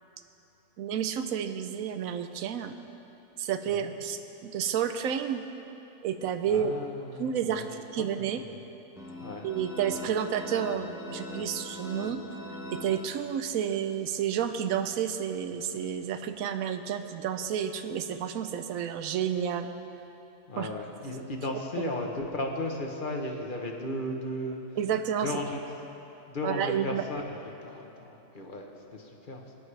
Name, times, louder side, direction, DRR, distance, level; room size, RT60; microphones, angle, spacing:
voice 1, 0.8-2.7 3.4-5.4 6.0-6.7 7.2-7.6 7.9-8.4 9.4-12.2 12.7-19.7 20.6-20.7 21.8-21.9 24.8-25.3 26.4-27.0, right 8 dB, 85° right, 9 dB, 1.1 m, -30 dB
voice 2, 6.5-7.7 8.0-8.2 9.2-9.5 20.5-24.6 25.2-25.6 26.3-27.2 27.6-28.6 28.9-29.4, left 1 dB, 40° left, 1 dB, 1.1 m, -35 dB
sound 1, 9.0-13.7, left 1 dB, ahead, 1.0 m, -41 dB
20.0 x 10.0 x 3.3 m, 2.9 s
omnidirectional pair, 1.4 m